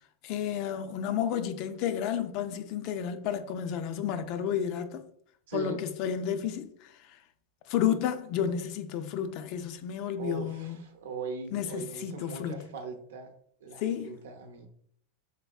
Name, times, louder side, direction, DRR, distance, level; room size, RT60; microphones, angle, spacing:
voice 1, 0.2-5.0 5.5-7.2 7.7-10.8 11.5-12.6 13.8-14.2, left 9 dB, 40° left, 0.3 m, -31 dB
voice 2, 5.5-5.8 10.2-13.3 13.6-14.7, right 4 dB, 85° right, 0.7 m, -39 dB
3.5 x 3.3 x 2.3 m
supercardioid pair, 165°, 0 cm